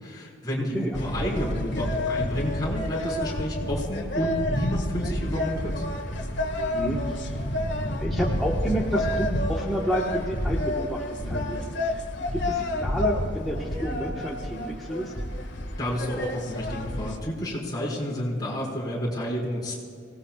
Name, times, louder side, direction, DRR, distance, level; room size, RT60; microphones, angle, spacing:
voice 1, 0.0-5.8 11.5-11.6 15.8-19.7, equal, 20° left, -6 dB, 4.7 m, -30 dB
voice 2, 0.6-1.0 6.7-7.4 8.0-15.1, equal, ahead, -5 dB, 1.4 m, -30 dB
sound 1, 0.9-17.2, left 1 dB, 60° left, 1.9 m, -29 dB
26.0 x 18.5 x 2.5 m, 2.4 s
head